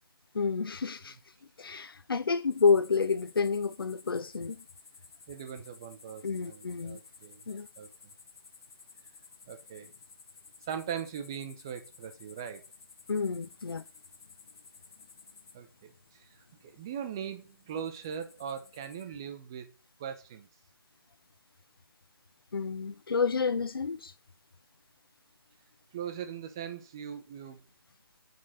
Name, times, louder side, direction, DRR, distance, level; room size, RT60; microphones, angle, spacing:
voice 1, 0.3-4.6 6.2-7.0 7.5-7.7 13.1-13.8 22.5-24.1, left 5 dB, 75° left, 0.6 m, -29 dB
Summer night ambience near Moscow, 2.5-19.0, left 5 dB, 35° left, 1.4 m, -56 dB
voice 2, 5.3-7.4 7.8-7.9 9.5-9.9 10.7-12.6 15.5-19.7 20.0-20.5 25.9-27.6, right 8 dB, 10° right, 0.5 m, -40 dB
9.7 x 3.7 x 6.3 m
hypercardioid pair, 170°, 12 cm